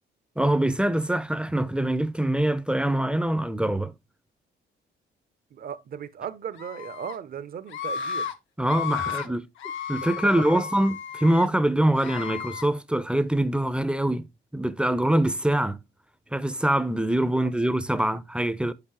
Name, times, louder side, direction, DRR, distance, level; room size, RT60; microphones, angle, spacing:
voice 1, 0.4-3.9 8.6-9.4 9.9-14.2 14.5-15.8 16.3-18.7, right 1 dB, 5° right, 0.5 m, -24 dB
voice 2, 5.5-8.3 9.1-9.3 10.0-10.7 17.3-17.5, right 8 dB, 50° right, 0.6 m, -38 dB
Screaming, 6.6-7.1 7.7-8.3 8.6-9.3 9.6-11.5 11.9-12.7, left 8 dB, 75° left, 0.7 m, -33 dB
6.7 x 5.1 x 2.9 m
cardioid pair, 90°, 20 cm